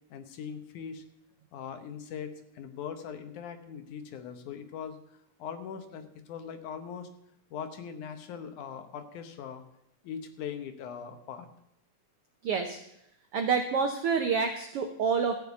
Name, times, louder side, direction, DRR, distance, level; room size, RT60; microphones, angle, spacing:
voice 1, 0.1-1.0 1.5-5.0 5.4-7.1 7.5-9.6 10.0-11.5, left 7 dB, 75° left, 7 dB, 2.4 m, -40 dB
voice 2, 12.4-12.8 13.3-15.4, right 5 dB, 85° right, 5 dB, 1.2 m, -27 dB
14.5 x 5.3 x 8.1 m, 0.80 s
omnidirectional pair, 3.7 m